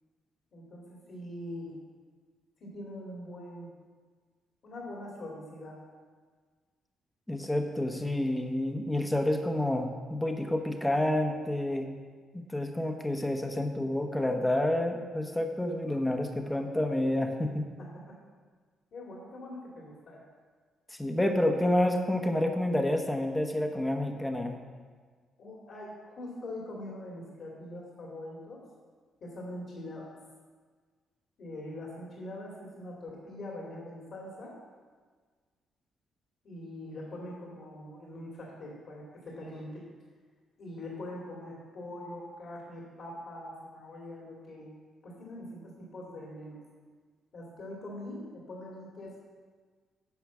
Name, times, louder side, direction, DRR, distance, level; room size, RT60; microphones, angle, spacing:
voice 1, 0.5-1.8 2.6-3.7 4.6-5.8 17.8-18.2 18.9-20.2 25.4-28.6 29.2-30.1 31.4-34.5 36.4-39.8 40.6-44.7 45.0-46.6 47.3-49.2, left 1 dB, 60° left, -3 dB, 2.4 m, -43 dB
voice 2, 7.3-11.9 12.5-17.7 21.0-24.6, left 1 dB, 10° left, 4 dB, 1.0 m, -29 dB
9.6 x 5.1 x 7.2 m, 1.5 s
cardioid pair, 90°, 0 cm